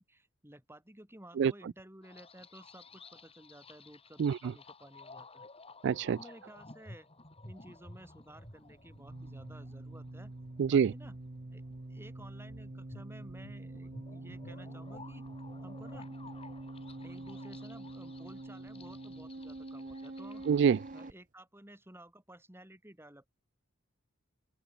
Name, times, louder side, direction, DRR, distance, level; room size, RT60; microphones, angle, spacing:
voice 1, 0.0-5.5 6.2-7.1 7.4-10.3 10.7-11.2 11.5-11.6 11.9-15.3 15.6-16.1 17.0-20.5 20.9-23.3, right 1 dB, 10° right, 5.8 m, -54 dB
sound 1, 2.0-21.1, left 2 dB, 30° left, 6.5 m, -54 dB
voice 2, 4.2-4.5 5.8-6.2 10.6-10.9 20.5-20.8, right 7 dB, 60° right, 0.3 m, -26 dB
sound 2, 8.3-21.1, right 2 dB, 40° right, 0.9 m, -46 dB
open air
head